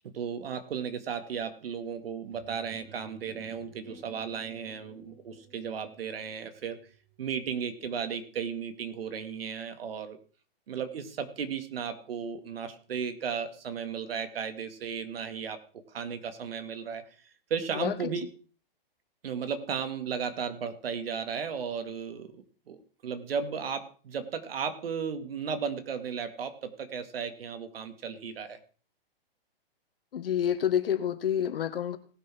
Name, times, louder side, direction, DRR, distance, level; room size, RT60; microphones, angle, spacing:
voice 1, 0.0-6.8 7.2-10.2 10.7-15.6 15.9-17.0 17.5-18.3 19.2-22.8 23.0-28.6, right 6 dB, 75° right, 9 dB, 2.0 m, -35 dB
sound 1, 2.3-7.9, right 5 dB, 60° right, 4.5 m, -54 dB
voice 2, 30.1-32.0, left 9 dB, 70° left, 10 dB, 1.7 m, -28 dB
18.5 x 6.2 x 4.5 m, 0.38 s
hypercardioid pair, 165°, 30 cm